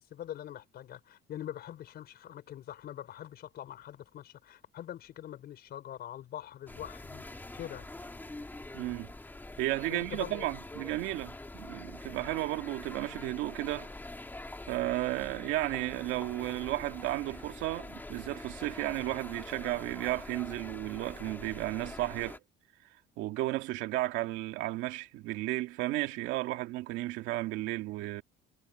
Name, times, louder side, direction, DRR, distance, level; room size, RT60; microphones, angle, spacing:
voice 1, 0.0-7.9 9.9-10.5, left 11 dB, 55° left, 5.1 m, -44 dB
sound 1, 6.7-22.4, left 2 dB, 10° left, 2.5 m, -45 dB
voice 2, 8.7-9.1 9.6-13.9 14.7-22.4 23.2-28.2, right 17 dB, 85° right, 2.2 m, -33 dB
cardioid pair, 125°, 19 cm